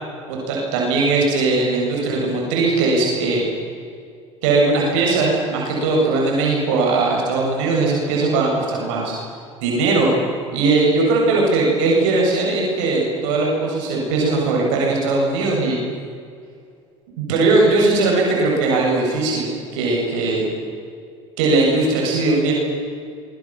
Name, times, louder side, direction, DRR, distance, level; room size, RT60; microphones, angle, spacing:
voice 1, 0.3-3.4 4.4-9.1 9.6-10.1 10.5-15.8 17.2-20.4 21.4-22.5, right 3 dB, 70° right, -2 dB, 7.8 m, -19 dB
25.0 x 24.0 x 7.8 m, 2.3 s
hypercardioid pair, 70°, 16 cm